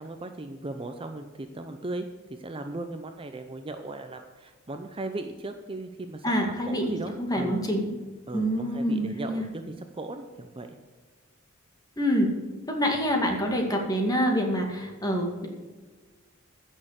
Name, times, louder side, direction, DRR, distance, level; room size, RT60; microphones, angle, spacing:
voice 1, 0.0-2.1 2.4-6.3 6.7-7.7 8.3-10.8, right 2 dB, 25° right, 6 dB, 0.6 m, -37 dB
voice 2, 6.2-6.9 7.3-7.9 8.3-9.4 12.0-12.3 12.7-15.5, equal, 20° left, 2 dB, 2.2 m, -26 dB
15.0 x 6.5 x 6.6 m, 1.3 s
head